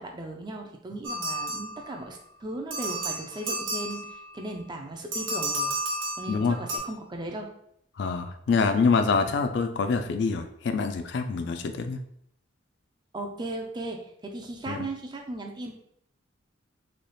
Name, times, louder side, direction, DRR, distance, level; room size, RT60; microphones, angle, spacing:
voice 1, 0.0-5.7 6.2-7.5 13.1-15.7, right 1 dB, 20° right, 2 dB, 0.4 m, -37 dB
sound 1, 1.0-2.2 2.7-4.4 5.1-6.8, right 1 dB, 85° right, 0.9 m, -32 dB
voice 2, 6.3-6.6 8.0-12.0 14.7-14.8, left 4 dB, 60° left, 7 dB, 0.3 m, -25 dB
3.3 x 2.3 x 3.9 m, 0.73 s
head